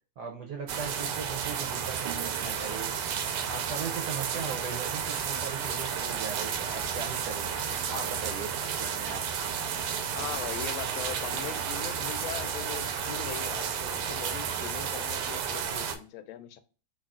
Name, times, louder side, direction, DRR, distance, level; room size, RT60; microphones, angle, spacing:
voice 1, 0.2-3.0 3.5-7.5 7.9-9.3, right 5 dB, 70° right, 3 dB, 1.0 m, -39 dB
sound 1, 0.7-16.0, right 7 dB, 90° right, 1.5 m, -32 dB
voice 2, 10.1-16.6, left 10 dB, 75° left, 9 dB, 1.3 m, -40 dB
3.8 x 2.3 x 3.5 m, 0.37 s
omnidirectional pair, 2.4 m